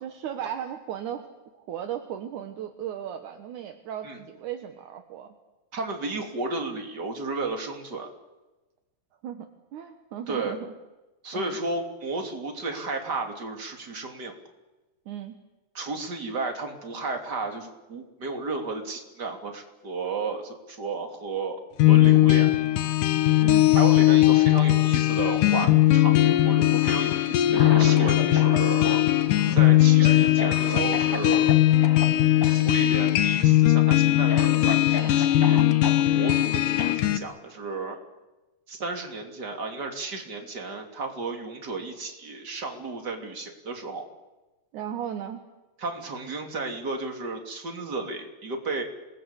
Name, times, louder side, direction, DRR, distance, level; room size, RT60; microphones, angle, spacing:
voice 1, 0.0-1.3 1.5-5.3 9.2-9.5 9.7-10.7 11.3-11.6 15.1-15.4 23.4-23.8 29.5-29.8 44.7-45.4, right 9 dB, 70° right, 6 dB, 2.6 m, -36 dB
voice 2, 5.7-8.1 10.3-10.6 11.2-14.3 15.7-21.6 21.9-22.5 23.7-28.9 29.5-31.5 32.5-35.6 36.1-38.0 38.7-44.1 45.8-48.8, right 3 dB, 30° right, 3 dB, 3.3 m, -33 dB
sound 1, 21.8-37.2, left 15 dB, 75° left, 2.7 m, -19 dB
Cough, 26.7-28.6 28.8-31.5 31.8-32.1 32.4-32.6 32.9-33.4 33.9-34.0 34.3-36.0 36.8-36.9, left 1 dB, 10° left, 1.4 m, -34 dB
27.0 x 20.0 x 8.3 m, 1.1 s
omnidirectional pair, 3.9 m